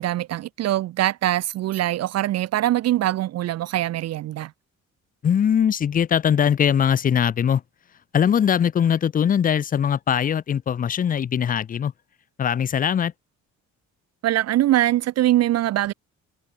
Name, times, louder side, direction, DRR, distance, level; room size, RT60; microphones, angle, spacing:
voice 1, 0.0-4.5 14.2-15.9, right 14 dB, 55° right, 0.4 m, -22 dB
voice 2, 5.2-7.6 8.1-11.9 12.4-13.1, left 8 dB, 30° left, 0.4 m, -21 dB
cardioid pair, 90°, 30 cm